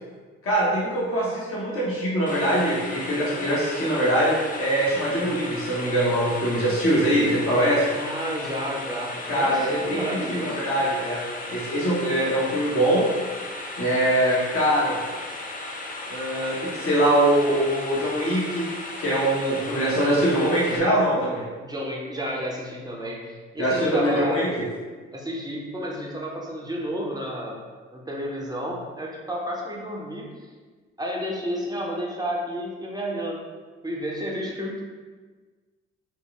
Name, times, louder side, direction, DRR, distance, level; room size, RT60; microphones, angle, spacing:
voice 1, 0.4-8.0 9.3-11.2 11.5-13.0 13.8-15.0 16.1-18.6 19.0-21.4 23.6-24.6, right 1 dB, 40° left, -7 dB, 1.3 m, -23 dB
sound 1, 2.3-20.8, left 2 dB, 25° left, 0.6 m, -36 dB
voice 2, 7.9-10.6 21.6-24.5 25.1-27.6 27.9-30.3 31.0-33.4 33.8-34.8, equal, 10° right, -3 dB, 1.0 m, -31 dB
4.8 x 2.2 x 3.4 m, 1.4 s
hypercardioid pair, 50°, 33 cm